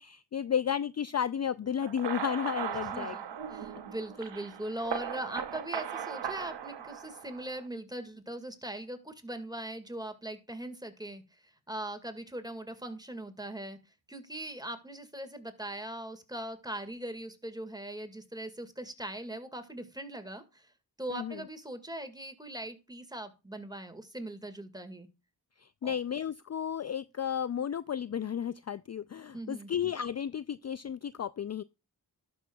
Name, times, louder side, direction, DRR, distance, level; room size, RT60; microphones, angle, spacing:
voice 1, 0.0-3.2 21.1-21.4 25.6-31.6, left 8 dB, 40° left, 0.4 m, -33 dB
sound 1, 1.8-7.6, right 8 dB, 80° right, 0.9 m, -38 dB
voice 2, 2.9-11.2 11.7-13.8 14.1-20.7 21.0-25.1 25.8-25.9 29.3-29.7, right 1 dB, 10° right, 1.9 m, -40 dB
11.5 x 6.1 x 2.3 m
cardioid pair, 50°, 41 cm